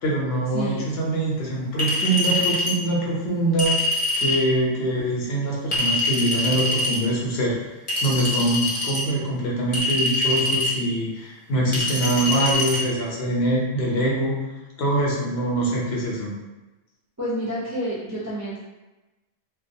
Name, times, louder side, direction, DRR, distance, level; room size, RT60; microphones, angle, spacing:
voice 1, 0.0-7.6 8.0-14.4 14.8-16.3, right 1 dB, 70° left, -4 dB, 0.9 m, -24 dB
voice 2, 0.5-0.9 17.2-18.7, right 1 dB, 25° right, -10 dB, 0.4 m, -29 dB
Chink clink, 1.8-2.8 3.6-4.4 5.7-7.0 7.9-9.0 9.7-10.8 11.7-12.8, left 2 dB, 35° left, 0.7 m, -24 dB
2.3 x 2.2 x 2.6 m, 1.1 s
omnidirectional pair, 1.1 m